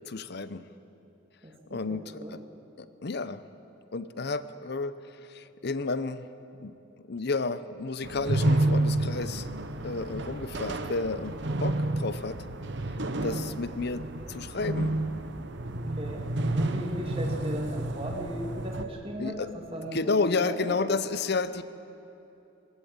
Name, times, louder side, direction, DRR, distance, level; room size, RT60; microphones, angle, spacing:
voice 1, 0.1-0.7 1.7-2.4 2.8-3.4 3.9-4.9 5.2-6.2 6.6-6.7 7.0-9.5 9.8-11.3 11.6-12.4 13.2-15.0 19.2-19.5 19.8-21.6, left 3 dB, 55° left, 13 dB, 0.7 m, -31 dB
voice 2, 1.4-2.4 15.7-16.3 16.6-20.8, equal, 30° right, 0 dB, 2.3 m, -37 dB
sound 1, 8.0-18.9, right 2 dB, 60° right, 1.0 m, -30 dB
21.0 x 15.5 x 8.7 m, 3.0 s
head